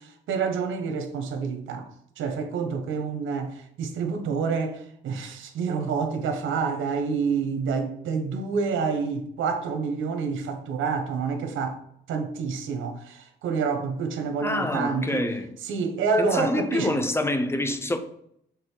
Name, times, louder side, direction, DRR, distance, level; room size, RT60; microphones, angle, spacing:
voice 1, 0.0-1.9 2.2-11.8 12.1-15.2 15.6-17.0, right 5 dB, 80° right, 1.2 m, -28 dB
voice 2, 14.4-15.5 16.2-18.0, left 1 dB, 10° left, 0.8 m, -26 dB
6.6 x 3.5 x 4.6 m
cardioid pair, 90°, 20 cm